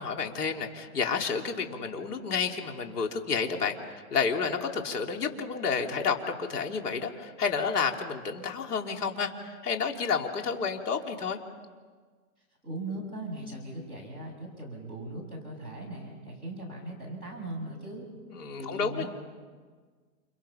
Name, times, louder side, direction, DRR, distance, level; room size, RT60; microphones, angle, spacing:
voice 1, 0.0-11.4 18.3-19.1, left 5 dB, 85° left, 3 dB, 3.5 m, -30 dB
voice 2, 12.6-18.1 18.6-19.1, right 1 dB, 10° left, -4 dB, 6.6 m, -39 dB
29.0 x 29.0 x 5.9 m, 1.5 s
hypercardioid pair, 180°, 45 cm